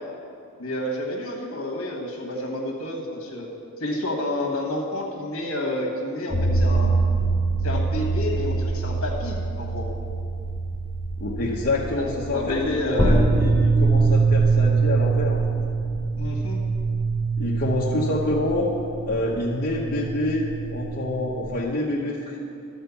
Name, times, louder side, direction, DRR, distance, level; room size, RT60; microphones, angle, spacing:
voice 1, 0.6-3.5 3.8-7.0 7.6-9.9 11.9-12.1 12.3-13.2 16.2-16.6, left 1 dB, 65° left, 1 dB, 1.5 m, -29 dB
sound 1, 6.3-21.6, right 3 dB, 10° left, 1.0 m, -24 dB
voice 2, 11.2-15.4 17.4-18.7 19.1-20.5 20.7-22.4, left 2 dB, 45° left, -5 dB, 0.9 m, -27 dB
12.0 x 4.5 x 7.0 m, 2.5 s
head